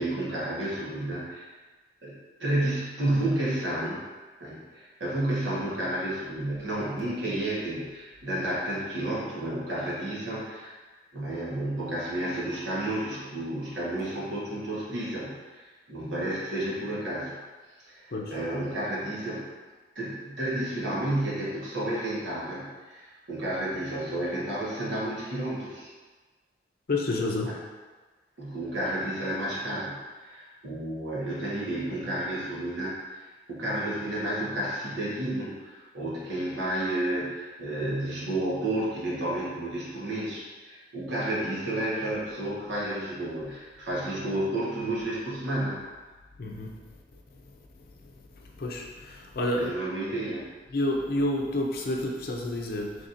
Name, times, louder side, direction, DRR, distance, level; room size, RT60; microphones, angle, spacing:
voice 1, 0.0-1.5 2.0-4.0 4.4-10.7 11.1-17.4 17.9-19.5 19.9-25.9 28.4-33.2 33.5-45.8 49.6-50.5, right 1 dB, 80° right, -7 dB, 1.2 m, -31 dB
voice 2, 26.9-27.5 46.4-46.7 48.6-49.7 50.7-52.9, left 1 dB, 55° left, 0 dB, 0.5 m, -29 dB
4.1 x 3.3 x 2.5 m, 1.3 s
head